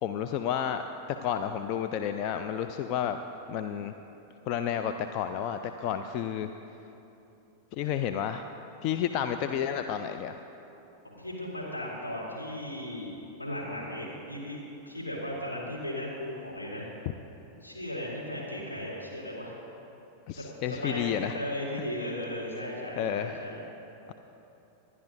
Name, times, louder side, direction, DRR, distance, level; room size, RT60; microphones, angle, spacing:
voice 1, 0.0-0.8 1.2-3.2 3.5-4.0 4.5-6.5 7.7-8.5 8.8-10.4 20.3-21.4 23.0-23.4, left 9 dB, 40° left, 8 dB, 0.4 m, -31 dB
voice 2, 11.0-14.6 14.8-16.9 17.6-19.6 20.6-23.6, left 1 dB, 80° left, -5 dB, 3.1 m, -36 dB
26.0 x 11.0 x 2.7 m, 2.9 s
figure-of-eight pair, 90°, 0 cm